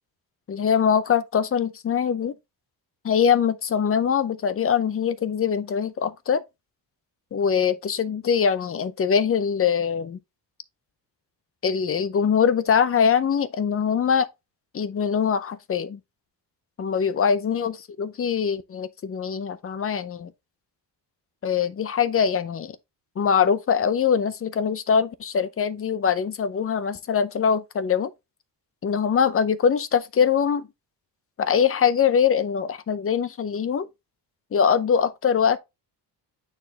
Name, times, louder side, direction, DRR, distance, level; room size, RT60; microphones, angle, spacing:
voice 1, 0.5-2.3 3.0-6.4 7.3-10.2 11.6-14.3 14.7-16.0 16.8-20.3 21.4-22.8 23.2-28.1 28.8-30.7 31.4-33.9 34.5-35.6, left 7 dB, 35° left, 0.6 m, -23 dB
8.9 x 4.2 x 2.8 m
cardioid pair, 140°, 42 cm